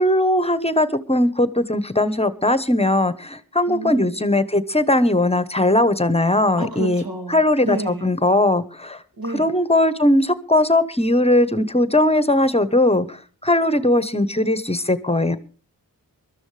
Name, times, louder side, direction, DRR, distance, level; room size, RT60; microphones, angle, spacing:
voice 1, 0.0-7.0 7.3-9.0 9.3-15.4, left 1 dB, 15° left, 14 dB, 1.0 m, -19 dB
voice 2, 3.7-4.2 6.6-8.1 9.2-9.5 15.2-15.4, right 2 dB, 85° right, 4 dB, 2.7 m, -30 dB
22.5 x 13.0 x 3.3 m, 0.36 s
cardioid pair, 60°, 35 cm